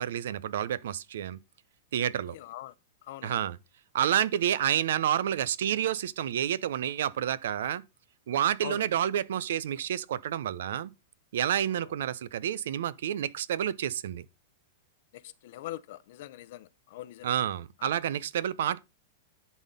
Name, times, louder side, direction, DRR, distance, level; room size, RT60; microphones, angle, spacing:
voice 1, 0.0-1.4 1.9-2.4 3.2-3.6 3.9-7.8 8.3-10.9 11.3-14.2 17.2-18.8, right 10 dB, 75° right, 0.6 m, -29 dB
voice 2, 2.3-2.7 3.0-3.4 8.6-8.9 15.1-17.3 17.8-17.9, left 14 dB, 55° left, 0.6 m, -42 dB
11.0 x 4.3 x 5.3 m
supercardioid pair, 155°, 0 cm